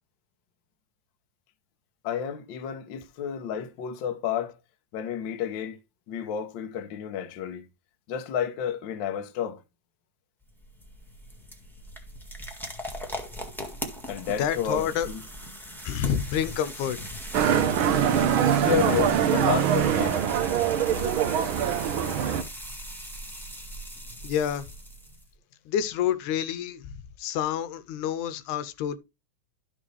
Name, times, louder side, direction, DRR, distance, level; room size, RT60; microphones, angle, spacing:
voice 1, 2.0-4.5 4.9-5.8 6.1-7.6 8.1-9.6 14.1-15.2 18.6-20.2, left 8 dB, 70° left, 1.1 m, -31 dB
sound 1, 10.4-25.3, equal, ahead, 0.9 m, -39 dB
voice 2, 14.3-15.1 15.8-17.0 24.2-24.7 25.7-29.0, left 9 dB, 85° left, 2.2 m, -28 dB
Motorcycle, 17.3-22.4, right 9 dB, 85° right, 1.1 m, -23 dB
12.5 x 5.4 x 3.3 m
omnidirectional pair, 3.5 m